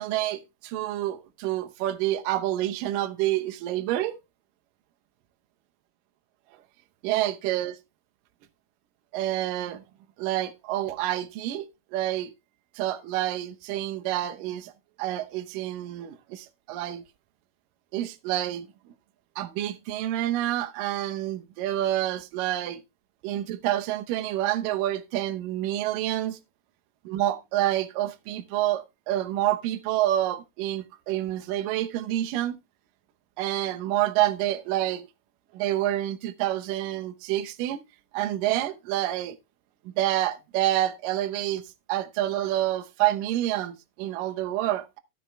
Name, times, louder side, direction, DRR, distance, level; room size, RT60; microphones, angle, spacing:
voice 1, 0.0-4.2 7.0-7.8 9.1-9.8 10.2-12.3 12.8-14.7 15.0-17.0 17.9-18.7 19.4-22.8 23.2-26.4 27.1-32.6 33.4-35.0 35.5-37.8 38.1-39.4 39.9-41.6 41.9-45.0, right 13 dB, 75° right, 2.3 m, -28 dB
13.0 x 7.0 x 3.2 m
omnidirectional pair, 4.3 m